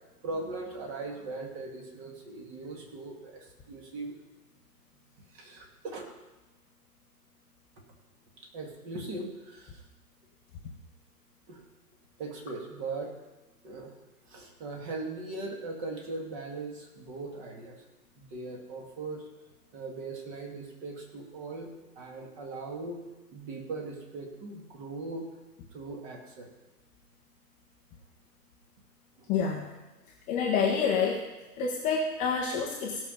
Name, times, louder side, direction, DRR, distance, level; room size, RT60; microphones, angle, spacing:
voice 1, 0.2-4.2 5.3-6.0 8.5-9.8 11.5-11.6 12.2-13.1 13.6-13.9 14.2-17.9 18.2-19.3 19.7-23.0 23.3-25.3 25.7-26.5 29.2-29.3, right 3 dB, 30° right, 1 dB, 2.4 m, -39 dB
voice 2, 29.3-29.7 30.3-31.2 31.6-33.0, left 5 dB, 15° left, -2 dB, 0.8 m, -28 dB
16.5 x 6.1 x 5.3 m, 1.1 s
hypercardioid pair, 140°, 48 cm